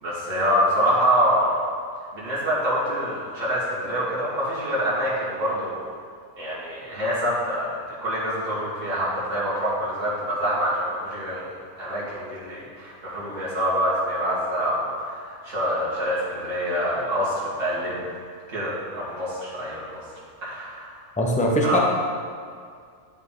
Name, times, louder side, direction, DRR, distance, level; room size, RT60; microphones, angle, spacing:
voice 1, 0.0-1.7 2.1-5.8 6.4-11.4 11.8-18.0 18.5-20.0 20.4-21.0 21.6-21.8, equal, 85° right, -8 dB, 2.1 m, -26 dB
voice 2, 21.2-21.8, equal, 5° left, -2 dB, 0.7 m, -21 dB
11.0 x 4.4 x 3.8 m, 2.1 s
omnidirectional pair, 1.3 m